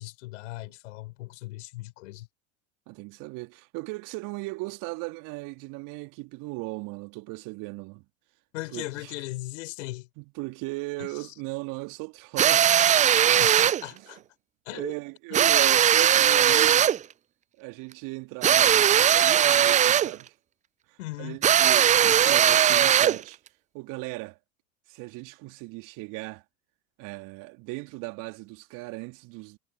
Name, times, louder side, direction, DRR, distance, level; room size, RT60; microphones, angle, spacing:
voice 1, 0.0-2.3 8.5-10.1 11.0-11.1 13.3-14.2 14.6-14.9 21.0-21.4, left 19 dB, 65° left, 5.0 m, -38 dB
voice 2, 2.9-8.0 8.7-9.2 10.2-13.2 13.9-14.1 14.7-16.9 17.6-20.3 20.9-23.4 23.7-24.4 24.9-26.4 27.0-29.6, right 25 dB, 50° right, 2.4 m, -37 dB
sound 1, 12.4-13.8 15.3-17.0 18.4-20.2 21.4-23.2, right 10 dB, 20° right, 0.5 m, -19 dB
figure-of-eight pair, 75°, 40 cm